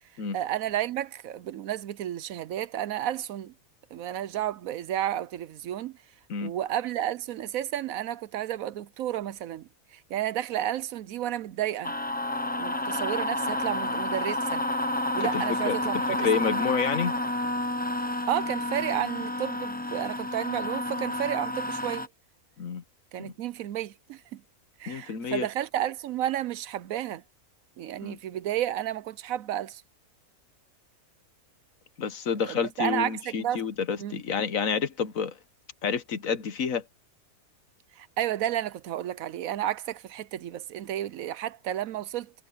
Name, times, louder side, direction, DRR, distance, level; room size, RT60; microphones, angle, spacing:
voice 1, 0.3-3.5 3.9-6.0 6.4-11.9 12.6-14.6 15.1-16.3 18.3-22.1 23.1-24.4 24.8-27.2 27.8-29.8 32.4-33.6 34.0-34.2 37.9-42.3, right 11 dB, 70° right, 1.0 m, -32 dB
sound 1, 11.8-22.1, left 1 dB, 10° left, 0.6 m, -30 dB
voice 2, 15.2-15.8 16.2-17.2 22.6-22.8 23.2-23.3 24.9-25.5 28.0-28.2 32.0-35.4 35.8-36.8, left 6 dB, 65° left, 1.5 m, -29 dB
omnidirectional pair, 1.6 m